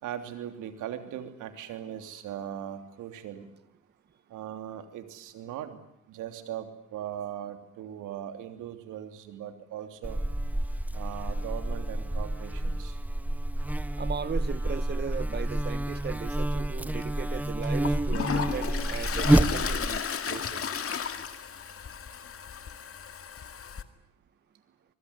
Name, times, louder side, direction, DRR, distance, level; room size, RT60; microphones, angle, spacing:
voice 1, 0.0-3.5 4.3-5.8 6.1-10.2 10.9-13.0 16.7-16.8 18.1-18.2 20.3-20.5, right 10 dB, 90° right, 3.2 m, -39 dB
Buzz, 10.0-20.0, right 1 dB, 5° right, 1.2 m, -29 dB
voice 2, 14.0-20.8, right 6 dB, 35° right, 1.1 m, -38 dB
Toilet flush, 17.0-17.1 17.6-23.8, left 7 dB, 50° left, 2.1 m, -34 dB
24.5 x 22.0 x 9.9 m
cardioid pair, 90°, 30 cm